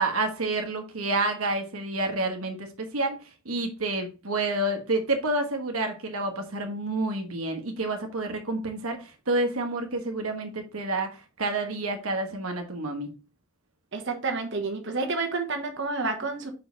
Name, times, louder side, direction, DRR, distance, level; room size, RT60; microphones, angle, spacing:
voice 1, 0.0-2.7 2.9-3.1 3.4-13.1, right 2 dB, 85° right, 1.3 m, -29 dB
voice 2, 13.9-16.5, right 3 dB, 60° right, 1.2 m, -29 dB
5.7 x 5.2 x 3.9 m
head